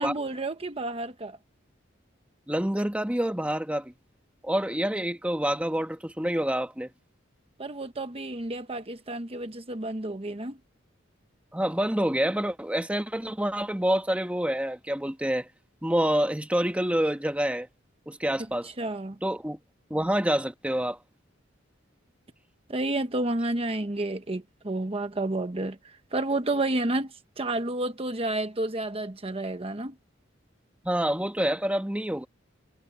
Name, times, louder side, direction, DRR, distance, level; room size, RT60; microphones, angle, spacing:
voice 1, 0.0-1.4 7.6-10.6 18.8-19.2 22.7-29.9, right 2 dB, 30° right, 1.1 m, -30 dB
voice 2, 2.5-3.9 4.4-6.9 11.5-15.5 15.8-17.7 18.1-18.7 19.2-19.6 19.9-21.0 30.8-32.3, equal, 5° right, 1.3 m, -27 dB
head